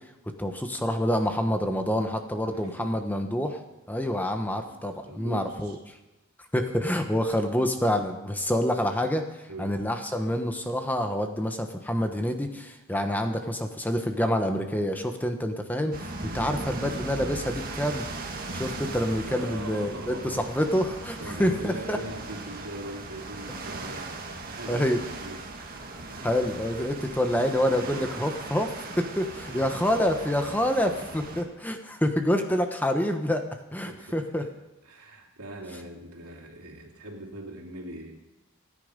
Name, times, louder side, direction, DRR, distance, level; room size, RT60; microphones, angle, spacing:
voice 1, 0.4-3.6 3.9-5.8 6.5-18.0 18.5-22.0 24.7-25.0 26.2-33.4 33.7-34.4, equal, 10° left, 5 dB, 1.1 m, -27 dB
voice 2, 2.5-3.0 4.7-4.8 5.0-5.8 7.3-7.4 7.7-7.8 9.5-9.8 19.3-20.5 21.2-25.7 29.5-29.9 31.4-31.5 33.8-34.5 34.8-38.2, right 1 dB, 90° right, 1 dB, 3.0 m, -41 dB
sound 1, 15.9-31.4, right 2 dB, 40° right, 1.8 m, -38 dB
26.0 x 10.0 x 5.2 m, 1.0 s
head